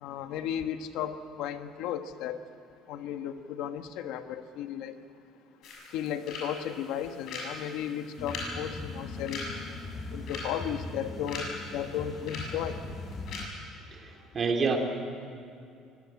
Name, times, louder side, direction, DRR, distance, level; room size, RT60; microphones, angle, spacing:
voice 1, 0.0-2.4 2.9-5.0 5.9-9.4 10.1-12.8, left 9 dB, 70° left, 8 dB, 1.4 m, -35 dB
sound 1, 5.6-13.4, left 2 dB, 50° left, 7.0 m, -42 dB
sound 2, 8.2-13.5, left 3 dB, 20° left, 1.1 m, -40 dB
voice 2, 13.9-14.8, right 5 dB, 25° right, 2 dB, 2.6 m, -28 dB
24.0 x 18.0 x 8.8 m, 2.5 s
cardioid pair, 175°, 0 cm